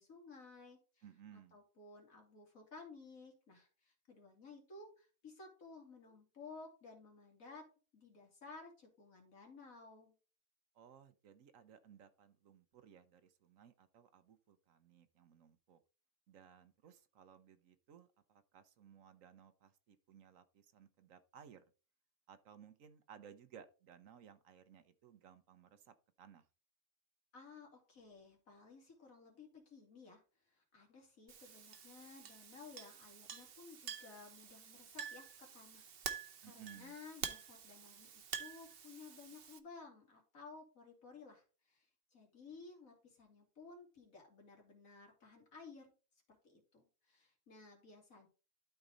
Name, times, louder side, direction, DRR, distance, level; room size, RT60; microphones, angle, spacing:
voice 1, 0.0-1.0 1.3-7.7 7.9-10.1 27.3-45.9 46.3-48.3, left 4 dB, 75° left, 2.9 m, -56 dB
voice 2, 1.0-1.6 10.7-15.8 16.3-21.6 22.3-26.5 36.4-36.9, right 8 dB, 70° right, 1.2 m, -60 dB
Chink clink, 31.3-39.6, right 7 dB, 50° right, 0.9 m, -48 dB
12.0 x 4.6 x 3.9 m
omnidirectional pair, 1.4 m